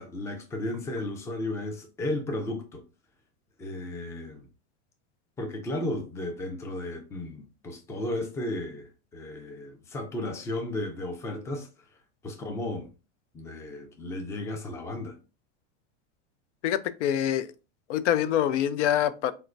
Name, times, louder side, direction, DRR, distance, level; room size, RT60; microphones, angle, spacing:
voice 1, 0.0-2.8 3.6-4.5 5.4-11.7 12.2-12.9 13.3-15.2, left 1 dB, 10° left, 0.4 m, -34 dB
voice 2, 16.6-17.5 17.9-19.3, left 10 dB, 85° left, 0.5 m, -25 dB
4.3 x 2.1 x 2.5 m
supercardioid pair, 135°, 35 cm